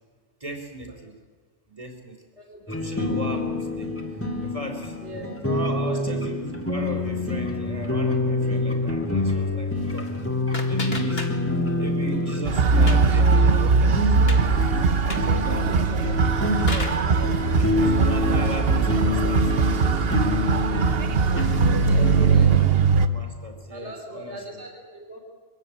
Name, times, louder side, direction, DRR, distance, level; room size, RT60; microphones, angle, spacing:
voice 1, 0.4-1.2 1.7-2.2 2.7-3.9 4.4-5.0 5.4-10.1 10.6-11.3 11.8-16.1 16.7-17.0 17.6-20.1 22.2-24.6, right 1 dB, 30° right, 3 dB, 3.9 m, -37 dB
sound 1, 2.7-22.5, left 2 dB, 10° left, 2.2 m, -27 dB
voice 2, 5.0-6.2 15.2-15.9 21.9-22.5 23.7-25.2, equal, 75° right, 3 dB, 3.9 m, -39 dB
sound 2, 9.8-11.8 12.1-13.2 13.6-13.7 14.0-14.4 15.0-15.4 16.1-17.1, left 2 dB, 60° left, 2.8 m, -35 dB
sound 3, 12.4-23.1, right 5 dB, 60° right, 1.2 m, -20 dB
23.5 x 16.0 x 9.9 m, 1.5 s
omnidirectional pair, 1.2 m